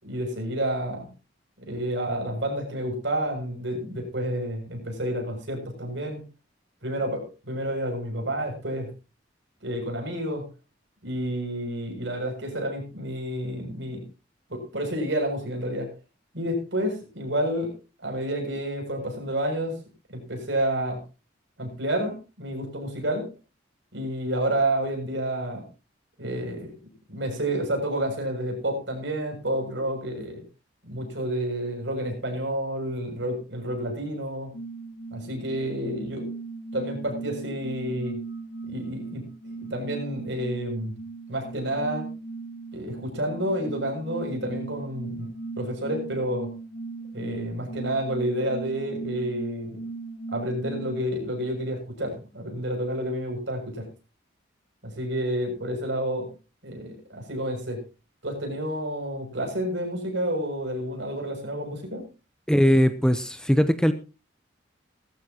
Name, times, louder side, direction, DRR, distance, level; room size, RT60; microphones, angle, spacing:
voice 1, 0.0-1.1 1.6-6.2 6.8-8.9 9.6-10.5 11.0-14.0 14.5-15.9 16.3-17.7 18.0-19.8 20.1-21.0 21.6-23.3 23.9-25.7 26.2-26.7 27.1-30.4 30.8-34.5 35.1-36.3 36.7-38.2 38.7-40.9 41.3-42.1 42.7-45.3 45.6-46.5 47.1-49.8 50.3-53.9 54.8-56.3 56.6-57.8 58.2-62.1, right 1 dB, 65° right, 2 dB, 6.8 m, -30 dB
sound 1, 34.5-51.0, right 3 dB, 60° left, 3.9 m, -38 dB
voice 2, 62.5-63.9, equal, 5° left, 10 dB, 0.8 m, -20 dB
19.0 x 14.0 x 2.9 m, 0.30 s
head